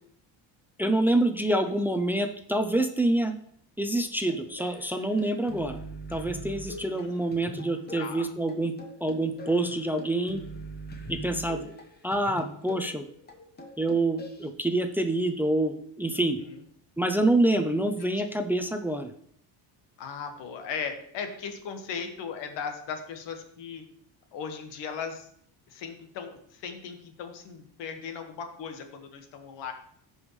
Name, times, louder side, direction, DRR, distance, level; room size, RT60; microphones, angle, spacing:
voice 1, 0.8-3.3 3.8-5.8 6.1-8.8 9.0-10.4 11.1-11.7 12.0-13.1 13.8-16.4 17.0-19.1, right 1 dB, 5° right, 6 dB, 0.5 m, -26 dB
sound 1, 4.2-14.5, right 1 dB, 20° left, 1.2 m, -43 dB
voice 2, 6.8-7.1 8.0-8.3 16.4-16.5 18.0-18.1 20.0-23.8 24.3-25.3 25.7-29.7, left 6 dB, 80° left, 5 dB, 1.6 m, -37 dB
15.0 x 5.5 x 3.2 m, 0.66 s
cardioid pair, 135°, 43 cm